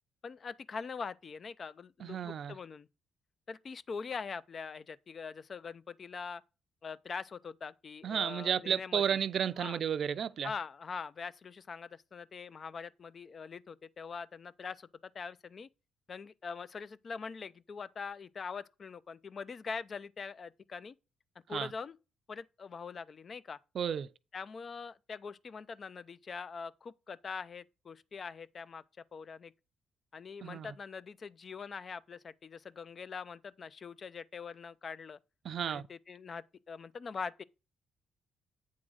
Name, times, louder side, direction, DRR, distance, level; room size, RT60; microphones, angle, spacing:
voice 1, 0.2-2.9 3.5-6.4 6.8-9.2 9.6-9.8 10.4-15.7 16.1-21.0 21.5-22.0 22.3-23.6 24.3-28.8 29.1-29.5 30.1-35.2 35.7-37.4, left 5 dB, 45° left, 0.4 m, -43 dB
voice 2, 2.0-2.5 8.0-10.5 21.5-21.7 23.7-24.1 30.4-30.7 35.4-35.8, right 8 dB, 60° right, 0.5 m, -32 dB
8.6 x 3.8 x 6.3 m
cardioid pair, 90°, 0 cm